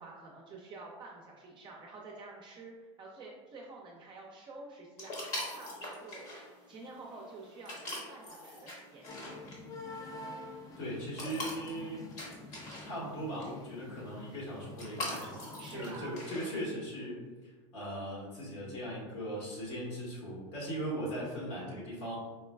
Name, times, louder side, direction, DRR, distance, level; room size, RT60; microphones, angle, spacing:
voice 1, 0.0-6.4 6.7-9.1 15.6-16.7, right 3 dB, 30° right, -2 dB, 0.5 m, -49 dB
sound 1, 5.0-16.6, left 1 dB, 50° left, 1.1 m, -44 dB
sound 2, 9.1-16.0, left 2 dB, 25° left, 0.4 m, -48 dB
voice 2, 10.8-12.1 12.8-22.2, equal, 75° left, -5 dB, 1.5 m, -39 dB
4.4 x 2.2 x 2.2 m, 1.3 s
supercardioid pair, 115°, 15 cm